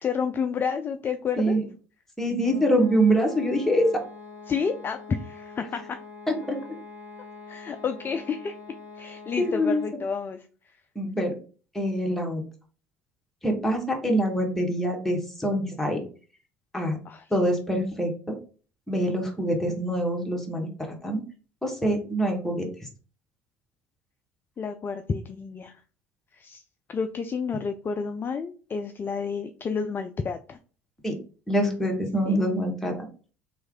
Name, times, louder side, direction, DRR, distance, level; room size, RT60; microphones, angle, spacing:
voice 1, 0.0-1.6 4.5-6.0 7.5-8.6 9.0-10.5 17.1-17.3 24.6-25.8 26.3-26.6 26.9-30.6 32.3-32.4, left 6 dB, 30° left, 8 dB, 0.3 m, -30 dB
voice 2, 2.2-4.0 6.3-6.6 9.4-9.8 10.9-11.3 11.7-12.4 13.4-16.0 16.7-17.0 17.3-18.3 18.9-21.2 21.6-22.7 31.0-31.2 31.5-33.0, equal, 5° left, 0 dB, 1.3 m, -25 dB
sound 1, 2.4-10.1, left 4 dB, 70° right, 1.2 m, -44 dB
3.1 x 2.5 x 3.6 m, 0.38 s
figure-of-eight pair, 60°, 8 cm